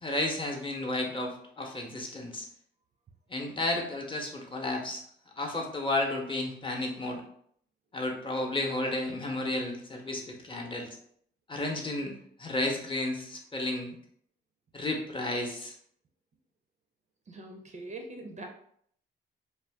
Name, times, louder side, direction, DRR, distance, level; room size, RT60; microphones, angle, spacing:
voice 1, 0.0-2.5 3.3-5.0 5.4-7.2 7.9-10.9 11.5-13.9 14.7-15.7, left 2 dB, 25° left, 1 dB, 0.7 m, -32 dB
voice 2, 17.3-18.5, right 2 dB, 35° right, 3 dB, 0.4 m, -42 dB
2.5 x 2.2 x 3.4 m, 0.64 s
cardioid pair, 90°, 20 cm